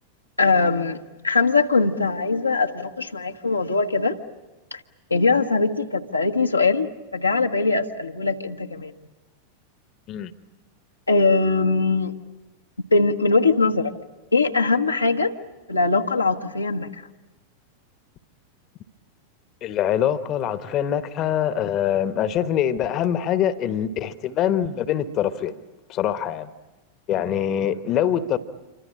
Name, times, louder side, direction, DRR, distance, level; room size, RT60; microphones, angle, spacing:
voice 1, 0.4-4.2 4.7-4.8 5.1-8.9 11.1-12.1 12.9-13.9 14.3-15.3 15.7-17.0, left 3 dB, 80° left, 1.3 m, -21 dB
voice 2, 19.6-25.6 25.9-26.5 27.1-28.4, left 10 dB, 35° left, 1.2 m, -24 dB
27.5 x 24.5 x 8.8 m
figure-of-eight pair, 90°, 0 cm